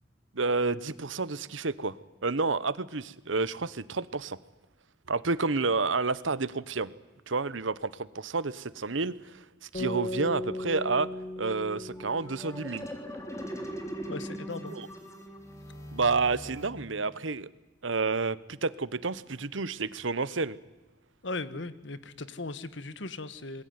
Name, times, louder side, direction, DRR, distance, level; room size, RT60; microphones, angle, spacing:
voice 1, 0.3-2.0 2.2-4.4 5.1-6.9 7.3-11.1 11.4-12.9 14.7-14.9 15.9-17.5 17.8-20.6, right 4 dB, 85° right, 18 dB, 1.1 m, -30 dB
sound 1, 9.7-14.0, left 1 dB, 40° left, 5.8 m, -38 dB
sound 2, 11.9-17.3, equal, 15° left, 3.7 m, -41 dB
voice 2, 14.1-14.8 21.2-23.6, left 3 dB, 70° left, 15 dB, 1.5 m, -38 dB
27.5 x 21.5 x 9.6 m, 1.1 s
head